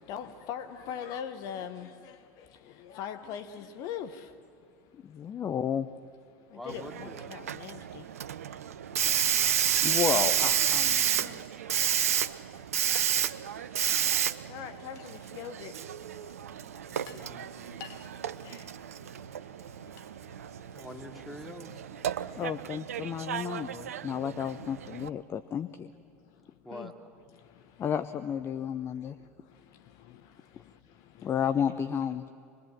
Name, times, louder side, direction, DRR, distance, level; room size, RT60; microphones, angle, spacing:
voice 1, 0.1-1.9 2.9-4.1 6.7-8.0 14.5-15.7 17.8-17.9 18.5-18.6 26.7-26.9, left 8 dB, 50° left, 1.0 m, -39 dB
voice 2, 5.0-5.9 9.8-11.4 22.4-25.9 27.8-29.2 31.2-32.3, left 8 dB, 30° left, 0.7 m, -32 dB
voice 3, 6.5-7.3 20.7-21.8 26.6-26.9, equal, ahead, 2.5 m, -43 dB
Hiss, 6.7-25.1, right 9 dB, 75° right, 0.6 m, -31 dB
24.5 x 21.5 x 7.4 m
figure-of-eight pair, 75°, 8 cm